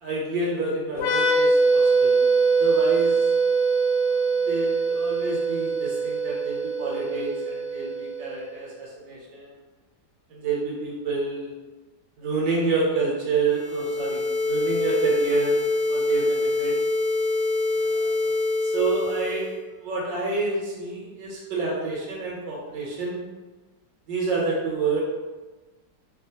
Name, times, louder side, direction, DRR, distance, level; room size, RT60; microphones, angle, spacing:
voice 1, 0.0-2.2 2.6-3.1 4.4-9.5 10.3-11.5 12.2-15.6 15.9-16.8 17.8-18.3 18.7-19.5 19.8-23.2 24.1-25.0, right 3 dB, 85° right, -4 dB, 1.5 m, -28 dB
sound 1, 0.9-8.5, right 4 dB, 75° left, 1.1 m, -22 dB
sound 2, 13.4-19.6, left 3 dB, 70° right, 1.2 m, -25 dB
3.2 x 2.4 x 2.8 m, 1.2 s
omnidirectional pair, 2.0 m